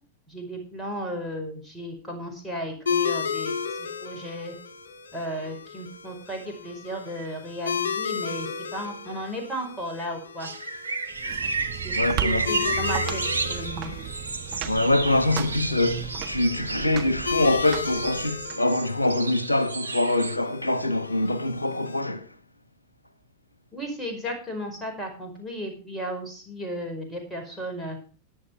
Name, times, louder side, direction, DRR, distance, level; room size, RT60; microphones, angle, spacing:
voice 1, 0.3-3.5 3.8-4.5 5.1-10.5 11.8-13.9 23.7-28.0, equal, 5° left, 5.1 m, -35 dB
sound 1, 2.9-22.0, left 6 dB, 65° left, 2.2 m, -34 dB
sound 2, 10.4-20.4, right 4 dB, 80° right, 1.0 m, -32 dB
sound 3, 11.1-18.6, right 14 dB, 40° right, 1.6 m, -35 dB
voice 2, 11.9-12.6 14.7-22.3, left 2 dB, 85° left, 1.1 m, -24 dB
14.5 x 10.5 x 4.6 m
figure-of-eight pair, 90°, 0 cm